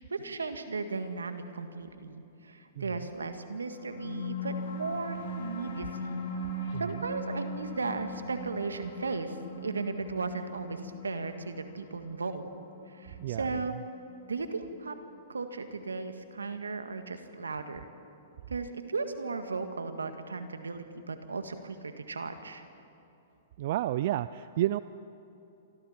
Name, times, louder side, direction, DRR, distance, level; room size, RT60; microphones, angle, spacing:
voice 1, 0.1-6.1 6.8-9.4 9.6-12.4 12.9-13.7 14.3-14.9 15.3-17.9 18.5-22.6, right 4 dB, 90° right, 8 dB, 1.8 m, -36 dB
sound 1, 3.6-14.5, equal, 70° left, 6.6 m, -39 dB
voice 2, 13.2-13.6 23.6-24.8, right 14 dB, 55° right, 16 dB, 0.4 m, -31 dB
28.0 x 25.0 x 4.4 m, 2.9 s
hypercardioid pair, 115°, 0 cm